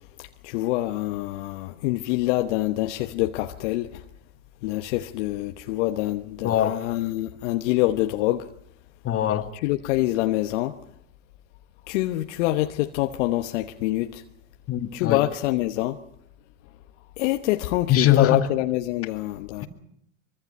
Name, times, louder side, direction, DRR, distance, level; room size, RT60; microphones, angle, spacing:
voice 1, 0.4-3.9 4.6-8.5 9.6-10.7 11.9-14.2 14.9-16.0 17.2-19.7, left 16 dB, 60° left, 1.2 m, -25 dB
voice 2, 6.4-6.8 9.0-9.5 14.7-15.3 17.9-18.5 19.6-19.7, left 11 dB, 35° left, 2.4 m, -22 dB
24.5 x 24.0 x 5.6 m
hypercardioid pair, 90°, 41 cm